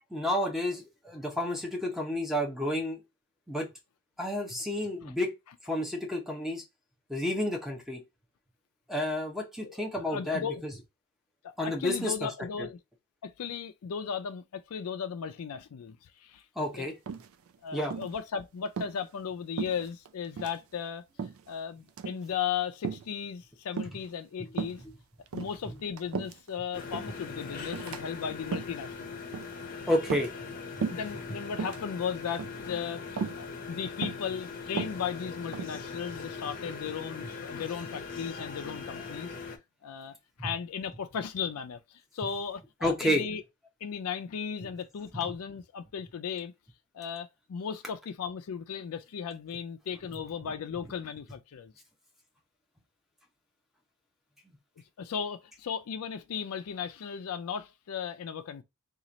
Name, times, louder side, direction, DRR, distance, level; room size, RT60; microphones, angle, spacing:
voice 1, 0.1-3.0 3.5-3.7 4.2-5.3 5.7-6.6 7.1-8.0 8.9-10.7 11.6-12.3 12.6-12.7 16.6-16.9 17.7-17.9 29.9-30.3 30.8-30.9 42.8-43.2, left 1 dB, ahead, 0.7 m, -30 dB
voice 2, 9.6-10.6 11.4-12.8 13.2-16.8 17.6-21.0 21.5-24.8 25.3-29.2 30.9-39.3 39.8-43.4 43.8-46.5 46.9-51.7 55.0-58.6, left 7 dB, 90° left, 0.4 m, -36 dB
sound 1, 17.1-17.5 17.9-18.2 18.7-19.0 19.6-20.1 20.4-20.6 21.2-21.5 21.9-22.2 22.8-23.1 23.8-24.1 24.5-24.8 25.3-26.5 26.9-27.2 27.7-28.0 28.4-28.8 29.3-29.6 30.0-30.5 30.8-31.1 31.5-31.8 32.4-32.7 33.2-33.4 34.0-34.3 34.7-35.8, right 5 dB, 70° right, 0.4 m, -35 dB
sound 2, 26.7-39.6, left 5 dB, 40° left, 0.7 m, -41 dB
3.0 x 2.4 x 3.9 m
head